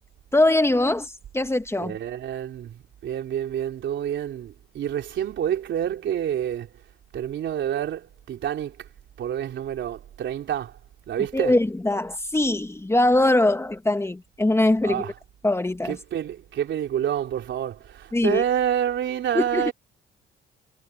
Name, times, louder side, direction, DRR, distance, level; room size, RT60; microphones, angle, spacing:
voice 1, 0.3-1.9 11.3-15.0 15.4-16.0 18.1-18.4 19.3-19.7, left 2 dB, 15° left, 1.5 m, -22 dB
voice 2, 1.8-6.7 7.1-8.9 9.2-10.8 11.1-11.6 14.8-15.1 15.8-19.7, right 10 dB, 70° right, 3.6 m, -28 dB
cardioid pair, 90°, 20 cm